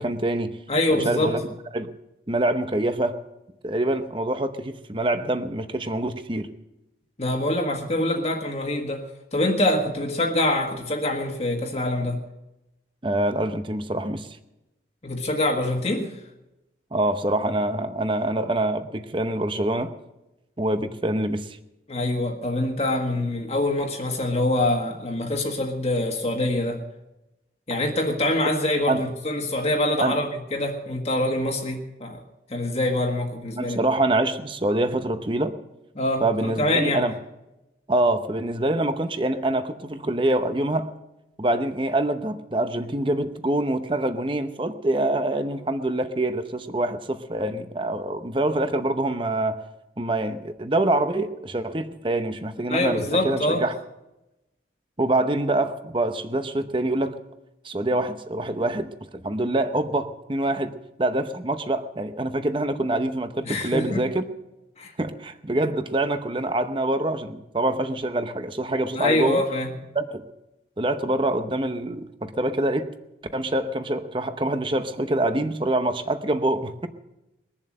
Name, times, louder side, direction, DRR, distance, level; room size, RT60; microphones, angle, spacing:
voice 1, 0.0-0.5 0.9-1.4 1.7-1.9 2.3-3.1 3.6-6.5 13.0-14.3 16.9-19.9 20.6-21.6 28.9-29.0 30.0-30.2 33.5-35.5 36.2-37.1 37.9-40.9 41.4-49.6 50.0-53.7 55.0-57.2 57.6-60.7 61.0-64.3 65.0-69.4 69.9-70.2 70.8-72.9 73.3-76.9, right 1 dB, 25° right, 9 dB, 0.8 m, -25 dB
voice 2, 0.7-1.3 7.2-12.2 15.0-16.1 21.9-26.8 27.7-32.2 32.5-33.8 35.9-37.0 52.7-53.6 63.4-64.0 64.8-64.9 68.9-69.7, left 1 dB, 35° left, 1 dB, 1.6 m, -25 dB
21.5 x 7.3 x 7.7 m, 0.96 s
head